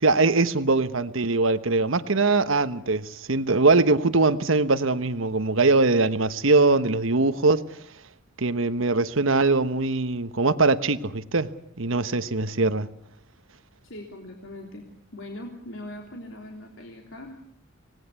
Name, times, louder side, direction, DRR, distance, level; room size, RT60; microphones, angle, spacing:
voice 1, 0.0-7.6 8.4-11.5 11.8-12.9, right 3 dB, 75° right, 1.2 m, -22 dB
voice 2, 13.8-14.9 15.1-17.5, left 1 dB, 75° left, 3.3 m, -40 dB
26.5 x 19.0 x 8.3 m
head